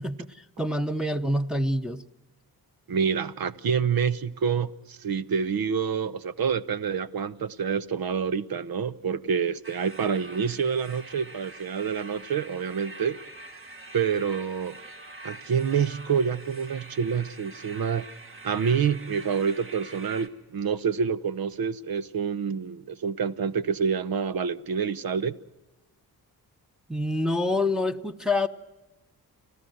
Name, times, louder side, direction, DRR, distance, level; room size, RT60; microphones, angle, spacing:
voice 1, 0.0-2.0 26.9-28.5, left 1 dB, ahead, 0.9 m, -27 dB
voice 2, 2.9-13.2 13.9-14.8 15.2-18.1 18.4-25.4, right 6 dB, 65° right, 0.9 m, -27 dB
sound 1, 9.6-20.3, right 2 dB, 30° right, 1.7 m, -45 dB
29.5 x 13.0 x 7.9 m
cardioid pair, 65°, 39 cm